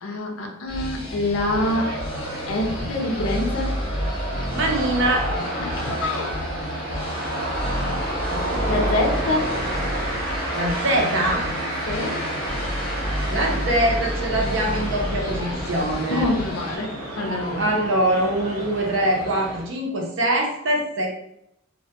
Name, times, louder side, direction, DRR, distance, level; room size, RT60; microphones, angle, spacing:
voice 1, 0.0-1.9 2.5-3.7 5.6-6.3 8.7-9.5 11.9-12.2 16.1-17.7, left 2 dB, 75° left, 1 dB, 0.5 m, -26 dB
sound 1, 0.7-16.8, equal, 25° left, 0.4 m, -31 dB
sound 2, 1.5-19.6, right 1 dB, 85° right, 0.9 m, -30 dB
voice 2, 4.5-5.5 8.3-8.8 10.5-11.4 13.3-16.3 17.6-21.1, right 1 dB, 60° right, 1 dB, 0.5 m, -23 dB
2.2 x 2.1 x 2.7 m, 0.78 s
head